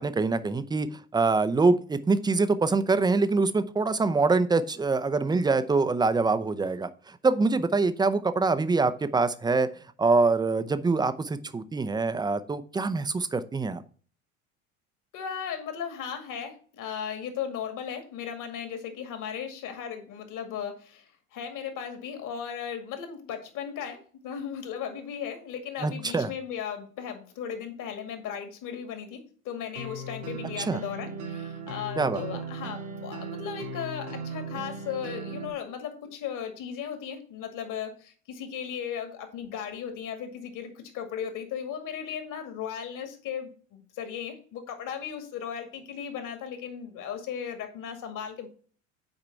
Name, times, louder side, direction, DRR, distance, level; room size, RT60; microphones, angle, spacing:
voice 1, 0.0-9.7 10.0-13.8 25.8-26.3 30.6-30.8 32.0-32.2, right 3 dB, 10° right, 12 dB, 0.6 m, -25 dB
voice 2, 15.1-48.5, left 8 dB, 50° left, 6 dB, 2.1 m, -36 dB
sound 1, 29.7-35.5, right 3 dB, 85° right, 1.9 m, -37 dB
9.0 x 4.8 x 4.5 m, 0.43 s
figure-of-eight pair, 70°, 41 cm